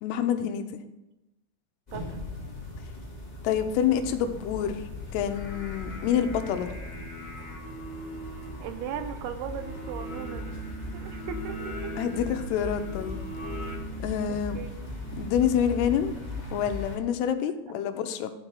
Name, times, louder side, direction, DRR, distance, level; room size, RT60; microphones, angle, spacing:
voice 1, 0.0-0.8 3.4-4.8 5.1-6.7 12.0-13.2 14.0-14.6 15.2-16.2 16.5-18.3, left 9 dB, 85° left, 8 dB, 2.7 m, -27 dB
sound 1, 1.9-17.0, left 2 dB, 60° left, 0.4 m, -39 dB
Singing, 5.0-13.8, left 1 dB, 20° left, 1.3 m, -42 dB
voice 2, 8.6-10.6 10.9-11.9 14.3-14.7, right 9 dB, 80° right, 8 dB, 2.4 m, -38 dB
sound 2, 10.1-16.6, right 3 dB, 45° right, 2.5 m, -43 dB
12.5 x 4.6 x 5.7 m, 0.95 s
omnidirectional pair, 4.8 m